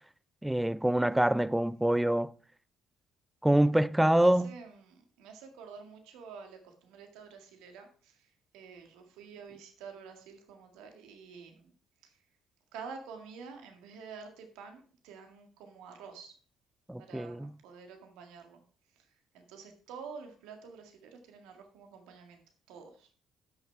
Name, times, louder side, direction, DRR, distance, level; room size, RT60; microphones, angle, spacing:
voice 1, 0.4-2.3 3.4-4.5 16.9-17.5, right 1 dB, 5° right, 0.5 m, -25 dB
voice 2, 4.2-8.3 8.5-11.7 12.0-12.1 12.7-16.3 17.0-18.6 19.3-22.4 22.7-23.1, right 5 dB, 75° right, 1.9 m, -49 dB
11.0 x 6.4 x 4.6 m
hypercardioid pair, 55°, 0 cm